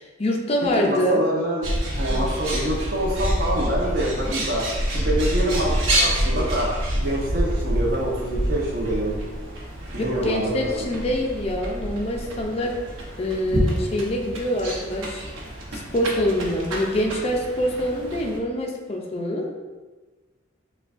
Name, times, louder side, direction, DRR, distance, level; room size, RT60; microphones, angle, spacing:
voice 1, 0.0-1.2 2.1-2.3 10.0-12.7 13.2-15.2 15.7-19.5, equal, 30° left, 0 dB, 0.4 m, -25 dB
voice 2, 0.8-4.7 4.9-9.2 9.9-10.9, right 1 dB, 50° right, -3 dB, 0.9 m, -26 dB
Bird, 1.6-18.4, equal, 90° right, 0.9 m, -27 dB
6.7 x 2.3 x 2.5 m, 1.3 s
head